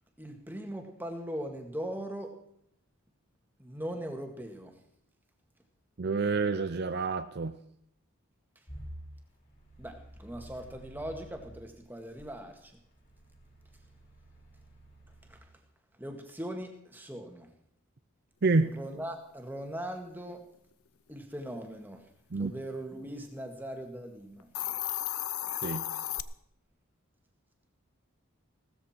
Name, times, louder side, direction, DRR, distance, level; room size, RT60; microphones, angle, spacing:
voice 1, 0.2-2.4 3.6-4.7 9.8-12.7 15.3-15.4 16.0-17.5 18.7-20.4 21.1-22.1 22.4-24.5, right 1 dB, 10° right, 4 dB, 1.9 m, -40 dB
voice 2, 6.0-7.6 18.4-18.8 22.3-22.5 25.6-25.9, right 3 dB, 50° right, 10 dB, 0.6 m, -28 dB
sound 1, 8.7-11.6 12.2-15.4, right 1 dB, 45° left, 5.4 m, -50 dB
Hiss, 24.4-26.2, left 13 dB, 85° left, 0.7 m, -34 dB
17.0 x 13.5 x 4.4 m, 0.72 s
head